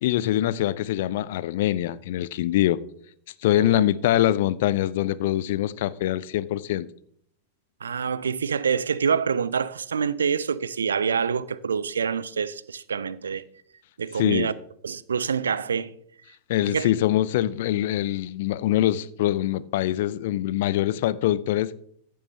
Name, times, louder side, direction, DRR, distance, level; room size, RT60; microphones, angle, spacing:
voice 1, 0.0-2.8 3.4-6.9 14.2-14.5 16.5-21.8, left 13 dB, 55° left, 0.4 m, -24 dB
voice 2, 7.8-13.4 14.0-14.5 14.8-15.9 16.7-16.9, right 6 dB, 70° right, 0.4 m, -26 dB
15.0 x 6.8 x 3.3 m
figure-of-eight pair, 90°, 0 cm